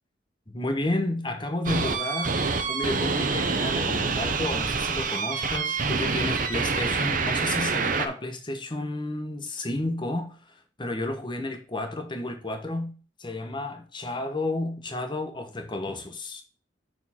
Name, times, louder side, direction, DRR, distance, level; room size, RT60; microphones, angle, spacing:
voice 1, 0.5-2.4 2.7-12.9 13.2-16.4, left 2 dB, 25° left, 1.1 m, -31 dB
sound 1, 1.6-8.1, right 4 dB, 45° right, 0.9 m, -26 dB
6.5 x 4.5 x 4.4 m
head